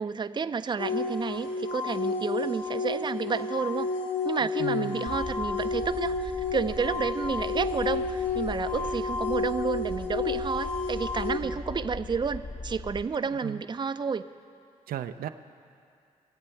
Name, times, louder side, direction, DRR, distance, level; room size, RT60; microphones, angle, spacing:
voice 1, 0.0-3.9 4.2-14.2, right 5 dB, 30° right, 12 dB, 0.5 m, -30 dB
sound 1, 0.8-11.4, left 4 dB, 75° left, 1.9 m, -31 dB
voice 2, 4.6-5.1 13.4-13.6 14.9-15.3, right 11 dB, 80° right, 8 dB, 0.5 m, -35 dB
sound 2, 5.1-13.1, left 2 dB, 35° left, 0.8 m, -40 dB
22.5 x 7.7 x 4.5 m, 2.3 s
supercardioid pair, 55°, 15 cm